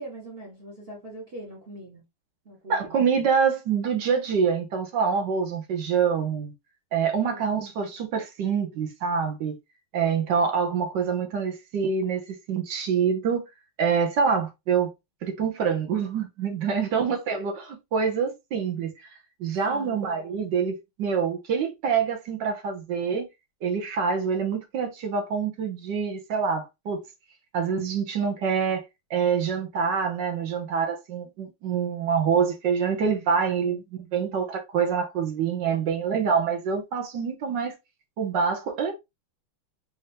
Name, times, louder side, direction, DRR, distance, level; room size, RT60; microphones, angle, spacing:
voice 1, 0.0-2.0 2.4-3.0 7.3-7.6 16.8-17.1 19.7-20.0 33.6-33.8, right 2 dB, 35° right, 1.0 m, -42 dB
voice 2, 2.7-6.5 6.9-9.5 9.9-13.4 13.8-14.9 15.2-19.1 19.4-23.3 23.6-27.0 27.5-28.8 29.1-33.8 34.1-37.7 38.2-38.9, right 6 dB, 65° right, 1.3 m, -26 dB
4.3 x 2.6 x 3.3 m
omnidirectional pair, 2.3 m